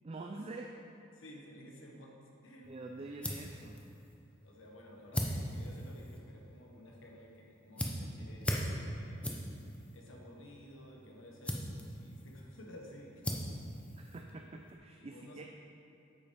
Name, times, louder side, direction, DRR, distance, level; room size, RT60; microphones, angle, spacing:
voice 1, 0.0-0.7 2.7-3.8 14.0-15.4, right 2 dB, 30° right, 2 dB, 0.4 m, -46 dB
voice 2, 1.1-2.1 2.4-3.0 4.4-9.3 9.9-13.4 15.0-15.5, equal, 80° left, -1 dB, 1.3 m, -53 dB
sound 1, 2.6-14.8, equal, 5° left, 0.7 m, -41 dB
8.3 x 5.7 x 5.1 m, 2.7 s
head